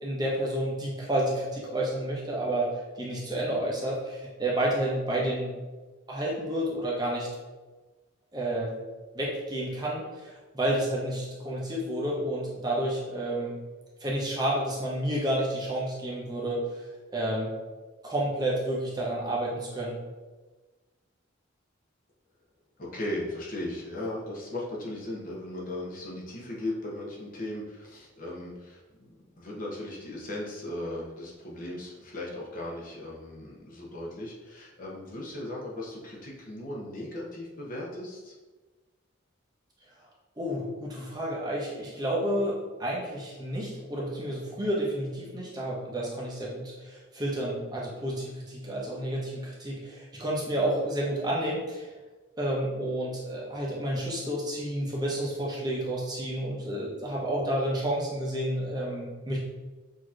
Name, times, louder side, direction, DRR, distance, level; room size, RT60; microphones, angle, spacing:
voice 1, 0.0-5.5 6.1-7.3 8.3-8.7 9.1-13.6 14.0-16.6 17.1-17.5 18.0-19.9 40.4-51.9 52.4-59.4, right 1 dB, 20° right, -4 dB, 0.8 m, -30 dB
voice 2, 22.8-38.3, left 1 dB, 40° left, -3 dB, 0.8 m, -37 dB
6.3 x 2.8 x 2.5 m, 1.2 s
head